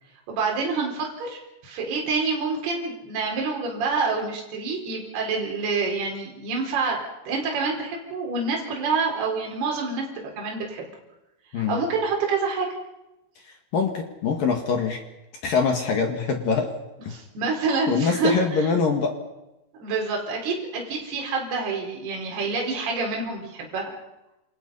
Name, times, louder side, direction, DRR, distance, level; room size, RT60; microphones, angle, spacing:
voice 1, 0.3-10.9 11.7-12.7 17.1-18.7 19.8-23.9, right 4 dB, 55° right, -1 dB, 6.1 m, -27 dB
voice 2, 13.7-15.0 15.4-16.7 17.0-17.1 17.9-19.1, left 5 dB, 55° left, 3 dB, 3.0 m, -23 dB
28.5 x 28.0 x 5.6 m, 0.97 s
omnidirectional pair, 5.8 m